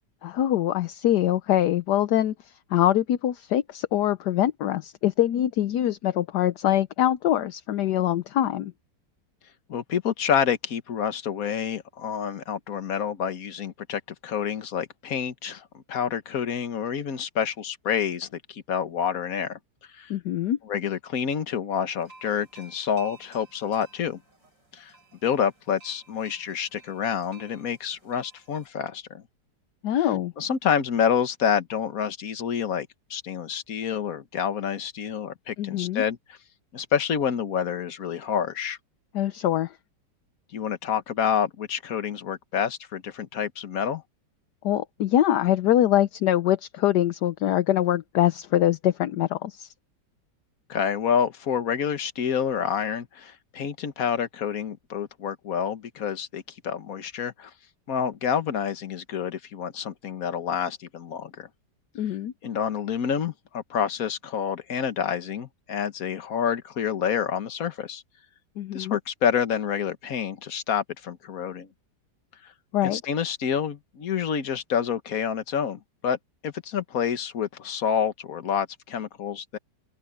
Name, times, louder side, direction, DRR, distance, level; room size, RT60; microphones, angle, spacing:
voice 1, 0.2-2.3 2.7-8.7 20.1-20.6 29.8-30.3 35.6-36.0 39.1-39.7 44.6-49.7 61.9-62.3 68.6-69.0 72.7-73.0, left 12 dB, 70° left, 1.3 m, -23 dB
voice 2, 9.7-19.6 19.9-20.1 20.7-24.2 24.7-24.9 25.2-29.2 29.9-30.1 30.4-36.4 36.7-38.8 40.5-44.0 50.7-57.5 57.9-61.5 62.4-68.0 68.7-71.7 72.4-72.5 72.8-76.2 76.4-79.6, left 8 dB, 55° left, 1.6 m, -28 dB
sound 1, 21.9-28.7, right 4 dB, 80° right, 8.4 m, -53 dB
omnidirectional pair, 1.9 m